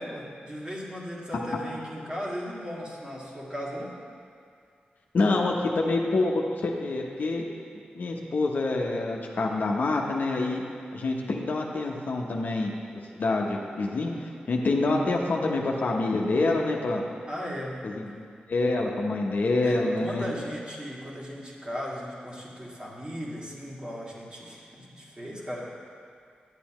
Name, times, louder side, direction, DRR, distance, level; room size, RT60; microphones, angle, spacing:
voice 1, 0.0-3.9 17.3-17.9 19.6-25.6, equal, 30° right, -5 dB, 2.1 m, -37 dB
voice 2, 5.1-7.5 7.9-10.6 10.9-12.7 13.2-14.1 14.5-17.0 17.8-20.3, left 2 dB, 65° left, 0 dB, 0.9 m, -26 dB
10.5 x 8.5 x 3.1 m, 2.3 s
cardioid pair, 65°, 3 cm